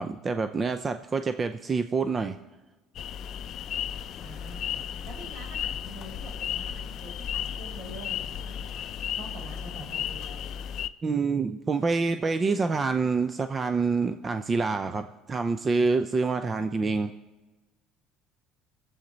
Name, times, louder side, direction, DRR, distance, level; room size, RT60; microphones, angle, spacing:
voice 1, 0.0-2.4 11.0-17.1, right 4 dB, 25° right, 9 dB, 0.5 m, -27 dB
sound 1, 2.9-10.9, left 9 dB, 50° left, 0.5 m, -34 dB
voice 2, 4.2-8.8 9.2-10.4 16.6-16.7, right 1 dB, 65° right, 1 dB, 4.1 m, -45 dB
23.0 x 7.9 x 4.0 m, 1.2 s
cardioid pair, 120°, 0 cm